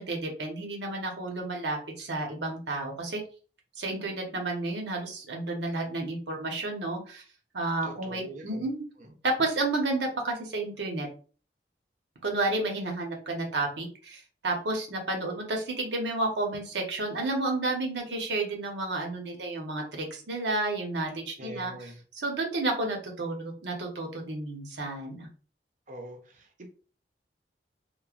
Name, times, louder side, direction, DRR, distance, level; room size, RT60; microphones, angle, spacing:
voice 1, 0.0-3.2 3.8-7.2 7.5-8.8 9.2-11.1 12.2-21.7 22.2-25.3, right 2 dB, 85° right, 1 dB, 0.9 m, -31 dB
voice 2, 7.8-8.7 9.0-9.1 21.4-22.0 25.9-26.7, right 2 dB, 45° right, 3 dB, 0.6 m, -44 dB
3.1 x 2.1 x 2.4 m, 0.39 s
head